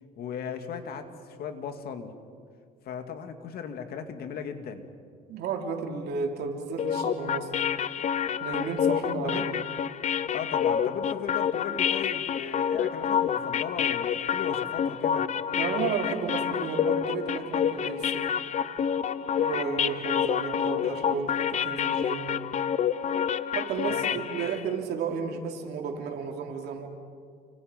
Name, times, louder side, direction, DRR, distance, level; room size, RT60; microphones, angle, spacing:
voice 1, 0.2-2.1 2.8-4.9 9.2-9.5 10.3-15.2 23.9-24.2, left 7 dB, 65° left, 6 dB, 2.5 m, -37 dB
voice 2, 5.3-7.6 8.4-9.6 15.5-18.3 19.4-22.4 23.5-26.9, right 5 dB, 75° right, 3 dB, 3.4 m, -33 dB
sound 1, 6.8-24.6, left 8 dB, 45° left, 0.8 m, -28 dB
30.0 x 25.0 x 5.4 m, 2.1 s
cardioid pair, 110°, 17 cm